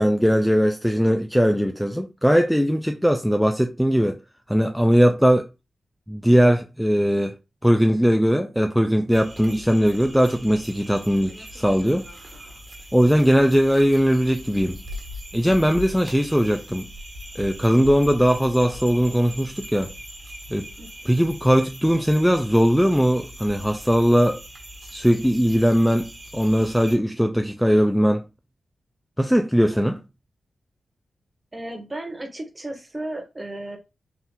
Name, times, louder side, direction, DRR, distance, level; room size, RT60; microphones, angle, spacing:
voice 1, 0.0-4.2 4.5-5.5 6.1-7.3 7.6-12.2 12.9-14.8 15.3-16.9 17.4-19.9 20.5-20.7 21.1-24.4 24.9-28.3 29.2-30.0, equal, ahead, 0.4 m, -20 dB
sound 1, 9.1-27.0, equal, 45° right, 1.4 m, -40 dB
voice 2, 20.8-21.1 29.7-29.9 31.5-33.8, right 1 dB, 25° right, 1.3 m, -35 dB
3.7 x 2.4 x 4.0 m
supercardioid pair, 45°, 0 cm